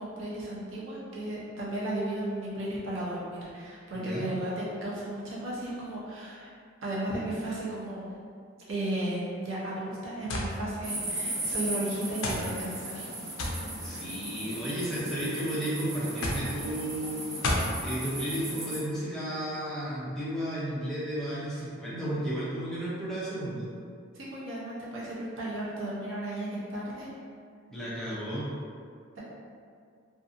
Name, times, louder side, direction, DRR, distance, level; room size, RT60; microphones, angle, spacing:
voice 1, 0.0-6.5 6.8-8.1 8.7-13.1 24.1-27.1, right 1 dB, 65° right, -7 dB, 0.7 m, -34 dB
voice 2, 3.9-4.3 13.8-17.4 17.8-23.7 27.7-28.5, right 1 dB, 5° left, -10 dB, 0.6 m, -33 dB
sound 1, 10.3-10.5 11.4-11.5 12.2-12.5 13.4-13.6 14.6-15.1 16.2-16.5 17.4-17.7, left 1 dB, 75° left, 0.4 m, -30 dB
sound 2, 10.8-18.8, right 1 dB, 90° right, 1.0 m, -37 dB
2.6 x 2.5 x 2.5 m, 2.2 s
head